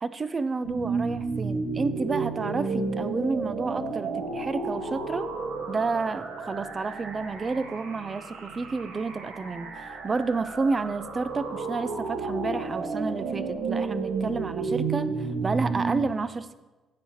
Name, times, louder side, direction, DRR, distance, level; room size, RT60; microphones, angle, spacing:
voice 1, 0.0-5.3 5.7-16.5, right 4 dB, 20° right, 13 dB, 0.4 m, -30 dB
sound 1, 0.6-16.0, right 4 dB, 85° right, 1.6 m, -32 dB
15.0 x 7.8 x 3.0 m, 1.2 s
cardioid pair, 165°, 0 cm